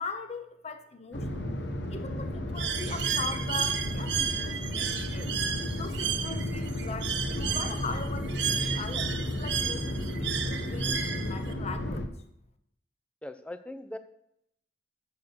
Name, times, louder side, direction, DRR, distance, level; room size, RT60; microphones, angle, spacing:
voice 1, 0.0-1.4 1.9-5.3 5.7-9.9 10.2-12.1, left 4 dB, 35° left, 8 dB, 0.7 m, -40 dB
sound 1, 1.1-12.1, left 1 dB, 75° left, 1.0 m, -33 dB
Bird, 2.6-11.5, right 8 dB, 75° right, 0.9 m, -33 dB
voice 2, 13.2-14.0, left 1 dB, 5° left, 9 dB, 0.5 m, -40 dB
7.2 x 6.4 x 6.6 m, 0.76 s
head